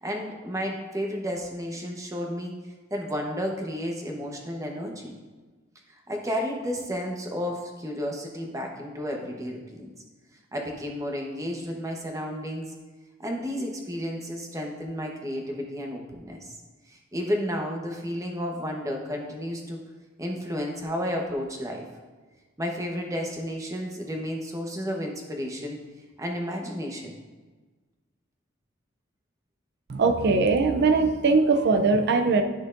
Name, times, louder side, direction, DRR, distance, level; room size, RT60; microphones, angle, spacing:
voice 1, 0.0-2.5 2.9-5.1 6.1-9.9 10.5-12.7 13.2-16.5 16.9-19.8 20.2-21.8 22.6-25.8 26.2-27.1, equal, 15° right, 1 dB, 1.0 m, -32 dB
voice 2, 29.9-32.4, right 4 dB, 55° right, 6 dB, 0.5 m, -21 dB
11.0 x 6.1 x 2.6 m, 1.3 s
head